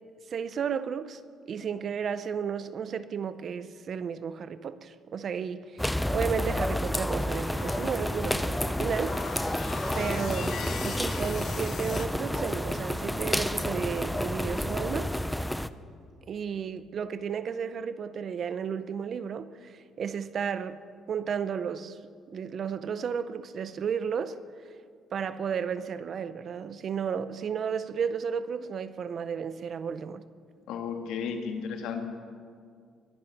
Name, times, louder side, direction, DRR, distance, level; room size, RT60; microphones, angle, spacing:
voice 1, 0.3-1.2 1.5-9.2 9.9-15.1 16.3-20.8 21.1-22.0 22.3-24.4 25.1-30.3, right 7 dB, 45° right, 0.6 m, -33 dB
sound 1, 5.8-15.7, left 1 dB, 5° left, 0.4 m, -30 dB
sound 2, 7.3-12.1, left 7 dB, 50° left, 1.0 m, -41 dB
voice 2, 30.7-32.0, left 6 dB, 85° left, 1.8 m, -33 dB
21.5 x 10.0 x 6.0 m
cardioid pair, 135°, 0 cm